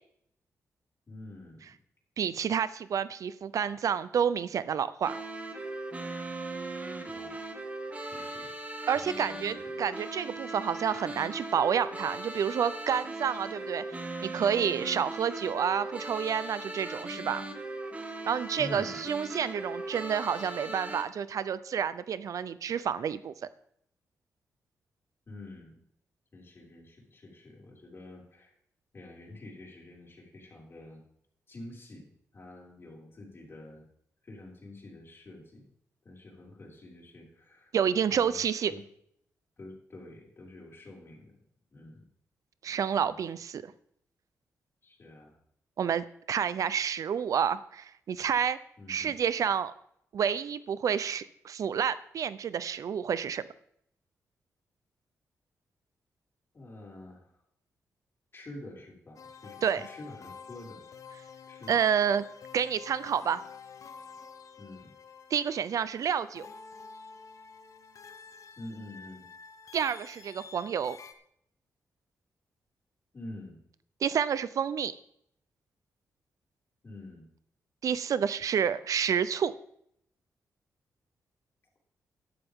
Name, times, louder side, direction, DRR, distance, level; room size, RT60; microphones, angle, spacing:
voice 1, 1.1-1.6 7.1-7.5 8.1-8.5 8.9-9.9 18.6-19.1 25.3-25.8 26.3-28.5 28.9-31.0 31.5-33.8 34.2-35.7 36.0-37.7 38.1-38.8 39.6-41.3 41.7-42.0 42.9-43.3 44.8-45.4 48.8-49.1 56.5-57.3 58.3-60.8 61.5-61.8 64.6-64.9 68.6-69.2 73.1-73.6 76.8-77.3, left 2 dB, 40° left, -3 dB, 5.8 m, -47 dB
voice 2, 2.2-5.2 8.9-13.8 14.2-17.4 18.2-23.3 37.7-38.7 42.6-43.7 45.8-48.6 48.9-49.7 50.1-53.4 59.6-59.9 61.7-62.2 62.5-63.4 65.3-66.5 69.7-71.0 74.0-74.9 77.8-79.5, right 8 dB, 70° right, 16 dB, 0.6 m, -29 dB
sound 1, 5.0-21.0, right 2 dB, 25° right, 2.2 m, -39 dB
sound 2, 59.2-71.1, left 6 dB, 65° left, 1.2 m, -49 dB
13.0 x 12.0 x 3.7 m, 0.70 s
cardioid pair, 75°, 6 cm